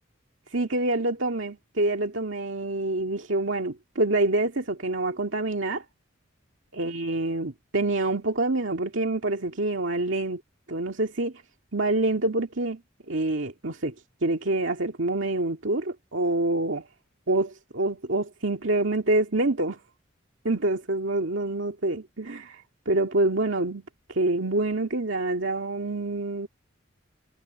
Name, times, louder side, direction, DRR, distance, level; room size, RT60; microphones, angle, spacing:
voice 1, 0.5-5.8 6.7-10.4 10.7-11.3 11.7-12.8 13.1-13.9 14.2-16.9 17.3-19.8 20.4-23.8 24.1-26.5, right 2 dB, 70° right, 2.1 m, -26 dB
head